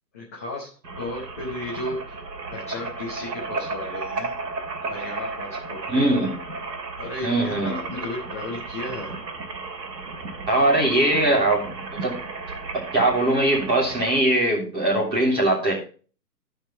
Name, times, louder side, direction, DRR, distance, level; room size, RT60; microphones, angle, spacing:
voice 1, 0.1-0.7 1.0-2.1 2.5-4.3 4.8-6.1 6.9-9.1, left 2 dB, 10° left, -6 dB, 0.7 m, -34 dB
sound 1, 0.8-14.2, right 3 dB, 75° right, 2.7 m, -34 dB
voice 2, 5.9-6.4 7.2-7.8 10.5-12.1 12.7-15.7, right 1 dB, 10° right, -5 dB, 3.4 m, -21 dB
14.5 x 5.4 x 4.3 m, 0.38 s
hypercardioid pair, 165°, 50 cm